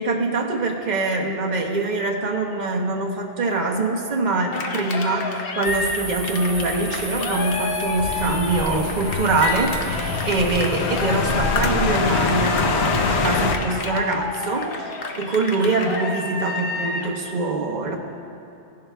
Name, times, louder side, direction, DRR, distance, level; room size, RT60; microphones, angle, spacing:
voice 1, 0.0-18.0, right 3 dB, 45° right, 0 dB, 1.1 m, -24 dB
Cheering, 4.5-17.2, left 3 dB, 60° left, 0.9 m, -30 dB
sound 1, 5.6-11.6, right 3 dB, 25° right, 0.3 m, -36 dB
sound 2, 8.0-13.5, left 4 dB, 85° left, 1.0 m, -24 dB
16.0 x 11.0 x 2.2 m, 2.7 s
omnidirectional pair, 1.1 m